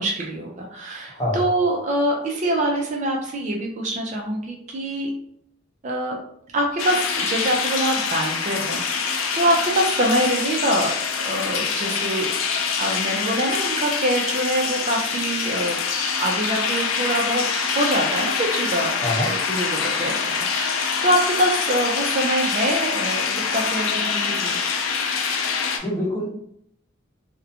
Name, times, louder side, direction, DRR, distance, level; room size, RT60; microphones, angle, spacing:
voice 1, 0.0-5.1 5.8-6.2 6.5-12.3 12.8-15.8 16.2-17.5 17.7-18.9 19.3-23.3 23.5-24.6, right 1 dB, 35° right, 0 dB, 0.4 m, -24 dB
voice 2, 1.1-1.5 19.0-19.3 25.8-26.3, left 1 dB, 15° left, -6 dB, 0.8 m, -25 dB
sound 1, 6.8-25.8, left 5 dB, 80° left, 0.4 m, -25 dB
2.4 x 2.1 x 2.7 m, 0.69 s
head